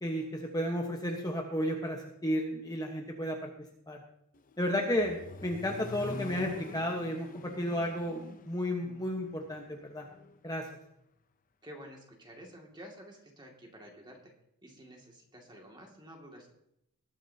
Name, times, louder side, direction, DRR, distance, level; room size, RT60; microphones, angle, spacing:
voice 1, 0.0-3.5 3.9-4.0 4.6-10.1 10.4-10.7, equal, 15° left, 1 dB, 1.2 m, -33 dB
Accelerating revving vroom, 4.3-10.4, left 2 dB, 40° left, 0.7 m, -46 dB
voice 2, 11.6-14.2 14.6-16.5, equal, 20° right, 0 dB, 2.3 m, -50 dB
20.0 x 9.9 x 2.8 m, 0.77 s
head